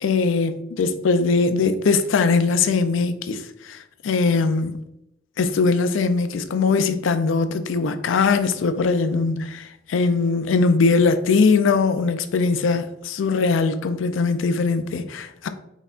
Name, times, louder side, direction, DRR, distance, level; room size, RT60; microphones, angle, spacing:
voice 1, 0.0-4.8 5.4-15.5, left 4 dB, 70° left, 0.4 m, -21 dB
4.1 x 4.0 x 2.4 m
head